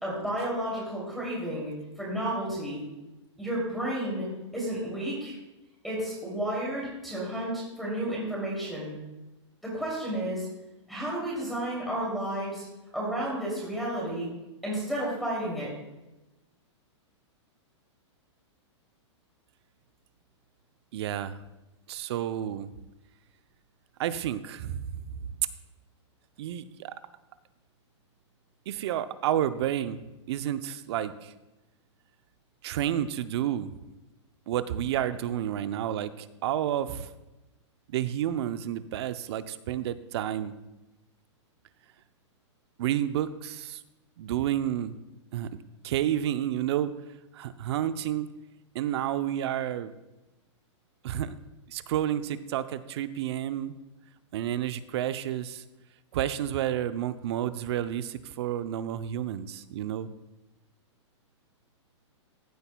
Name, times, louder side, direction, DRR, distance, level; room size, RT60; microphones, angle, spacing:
voice 1, 0.0-2.8 3.4-4.3 4.5-5.3 5.8-9.0 9.6-10.5 10.9-12.6 12.9-14.3 14.6-15.7, right 1 dB, ahead, -7 dB, 2.8 m, -32 dB
voice 2, 20.9-21.4 21.9-22.7 24.0-24.8 26.4-26.9 28.7-30.0 30.3-31.3 32.6-33.7 34.5-37.1 37.9-40.5 42.8-43.8 44.2-44.9 45.3-46.9 47.3-48.3 48.7-49.9 51.0-51.4 51.7-53.8 54.3-55.6 56.1-60.1, right 11 dB, 60° right, 13 dB, 0.6 m, -30 dB
15.0 x 8.0 x 2.3 m, 1.0 s
hypercardioid pair, 130°, 16 cm